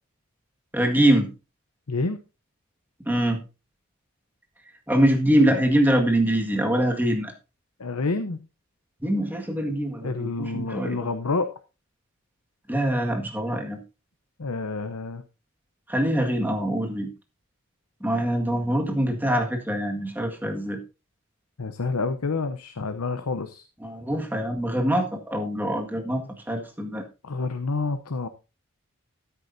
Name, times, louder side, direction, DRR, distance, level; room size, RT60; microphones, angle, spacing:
voice 1, 0.7-1.3 3.0-3.4 4.9-7.3 9.0-11.1 12.7-13.8 15.9-17.1 18.0-20.8 23.8-27.0, right 1 dB, 10° right, 2 dB, 1.8 m, -24 dB
voice 2, 1.9-2.2 7.8-8.5 10.0-11.5 14.4-15.2 21.6-23.7 27.2-28.3, left 3 dB, 90° left, 9 dB, 0.9 m, -28 dB
13.5 x 9.8 x 2.7 m, 0.29 s
head